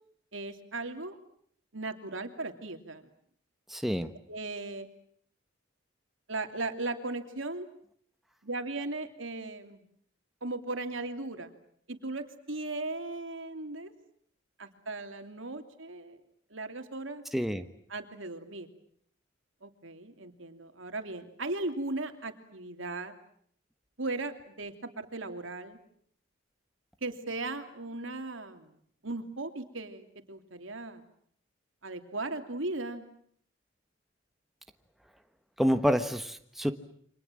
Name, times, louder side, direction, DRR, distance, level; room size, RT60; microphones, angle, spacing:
voice 1, 0.3-1.2 1.7-3.0 4.3-4.9 6.3-7.7 8.4-9.8 10.4-11.5 11.9-13.9 14.6-16.2 16.5-17.2 17.9-18.7 19.6-23.1 24.0-25.8 27.0-28.7 29.0-31.0 31.8-33.0, right 2 dB, 80° right, 7 dB, 3.0 m, -37 dB
voice 2, 3.7-4.1 17.3-17.7 35.6-36.7, equal, ahead, 7 dB, 1.3 m, -28 dB
29.0 x 25.5 x 7.6 m, 0.65 s
head